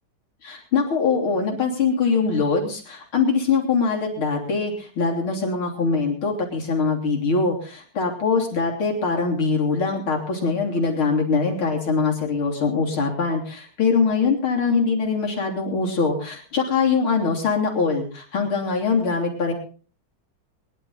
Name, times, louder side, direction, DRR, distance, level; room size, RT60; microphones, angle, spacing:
voice 1, 0.4-19.5, left 4 dB, 90° left, 1 dB, 4.1 m, -23 dB
22.0 x 11.5 x 4.0 m, 0.39 s
omnidirectional pair, 2.3 m